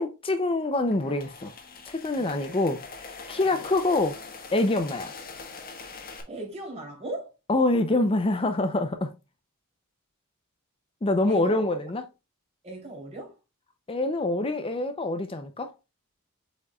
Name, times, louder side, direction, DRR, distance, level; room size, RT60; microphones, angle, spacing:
voice 1, 0.0-1.5 1.8-4.2 4.5-5.1 7.5-9.1 11.0-12.0 13.9-15.7, left 2 dB, 25° left, 0.6 m, -25 dB
sound 1, 0.6-6.2, left 4 dB, 45° left, 1.5 m, -43 dB
voice 2, 6.3-7.3 11.3-11.9 12.6-13.4, right 1 dB, 30° right, 3.3 m, -38 dB
7.9 x 5.1 x 2.4 m
head